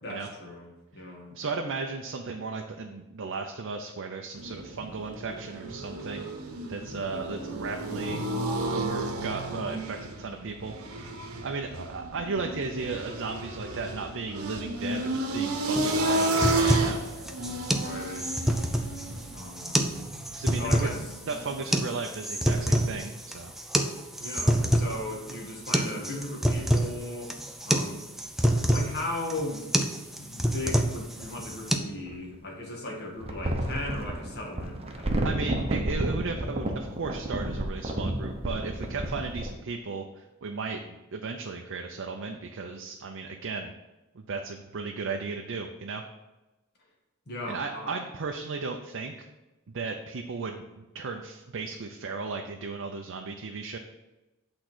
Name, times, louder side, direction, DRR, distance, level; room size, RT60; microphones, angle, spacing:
voice 1, 0.0-1.4 17.7-18.3 19.3-19.9 20.5-21.1 24.2-28.1 28.7-29.7 30.2-35.4 47.3-47.9, left 1 dB, 50° left, 0 dB, 1.8 m, -37 dB
voice 2, 1.3-6.3 6.6-8.3 8.7-11.1 11.4-17.0 20.3-20.9 21.3-23.5 35.2-43.7 44.1-46.0 47.5-49.3 49.7-53.8, right 4 dB, 60° right, 3 dB, 0.6 m, -35 dB
sound 1, 4.4-21.6, right 2 dB, 75° right, 1.1 m, -32 dB
sound 2, 15.8-31.8, equal, ahead, 0.5 m, -27 dB
sound 3, 28.9-29.0 31.2-32.4 33.2-39.5, right 1 dB, 30° right, 0.8 m, -31 dB
8.2 x 3.8 x 6.1 m, 1.0 s
head